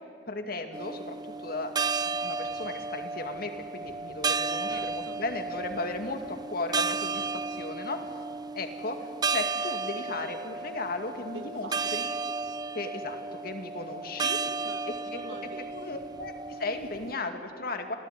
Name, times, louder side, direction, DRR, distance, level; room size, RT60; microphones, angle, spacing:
voice 1, 0.3-1.7 2.2-8.0 8.5-12.1 12.7-14.4 15.8-18.0, left 2 dB, 55° left, 6 dB, 2.3 m, -36 dB
sound 1, 0.7-17.1, right 4 dB, 25° right, 0.6 m, -33 dB
voice 2, 4.7-5.2 11.3-12.0 14.6-16.1, right 2 dB, 80° right, 5 dB, 2.5 m, -45 dB
27.5 x 17.5 x 10.0 m, 2.5 s
head